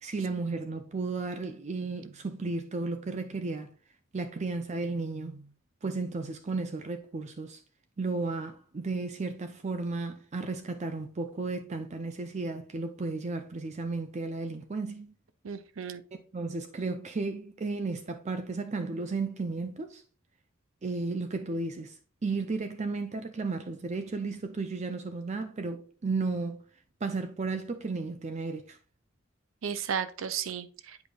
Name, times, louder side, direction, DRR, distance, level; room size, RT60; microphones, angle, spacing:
voice 1, 0.0-3.7 4.1-5.5 5.8-7.6 8.0-15.1 16.3-20.0 20.8-22.0 22.2-26.6 27.0-28.8, right 3 dB, 35° right, 0.5 m, -34 dB
voice 2, 15.4-16.0 29.6-31.1, right 7 dB, 90° right, 0.5 m, -34 dB
8.2 x 5.1 x 2.3 m
head